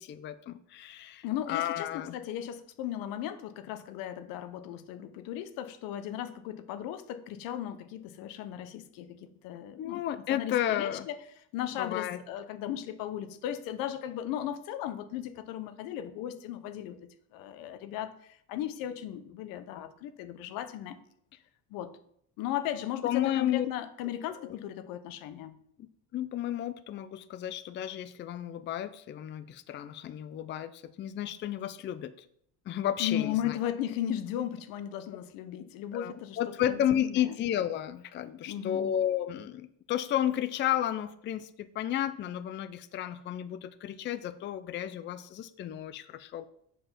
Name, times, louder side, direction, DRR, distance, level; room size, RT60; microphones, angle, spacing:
voice 1, 0.0-2.2 9.8-11.1 11.8-12.2 23.0-23.7 24.4-24.6 25.8-32.1 32.7-33.6 35.9-46.5, left 11 dB, 35° left, 12 dB, 0.4 m, -32 dB
voice 2, 1.2-11.2 11.5-21.0 21.7-21.9 22.4-25.6 33.0-37.4 38.5-39.0, left 11 dB, 85° left, 11 dB, 0.8 m, -36 dB
6.7 x 5.0 x 5.8 m, 0.69 s
cardioid pair, 120°, 33 cm